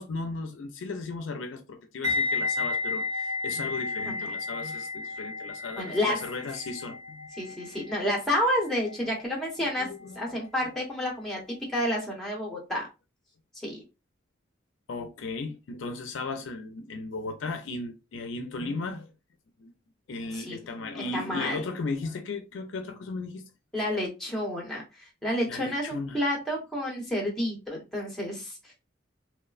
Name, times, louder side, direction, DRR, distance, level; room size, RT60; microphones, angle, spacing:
voice 1, 0.0-7.2 9.0-9.2 9.6-10.4 14.9-19.1 19.6-19.7 20.1-23.4 25.5-26.2, left 3 dB, 75° left, 0.4 m, -36 dB
sound 1, 2.0-11.0 11.2-11.5, left 3 dB, 55° right, 1.1 m, -33 dB
voice 2, 4.0-4.3 5.8-6.2 7.4-9.9 10.2-11.4 11.7-12.9 13.6-13.8 20.3-21.6 23.7-28.7, left 1 dB, ahead, 0.8 m, -30 dB
3.0 x 2.1 x 2.3 m
head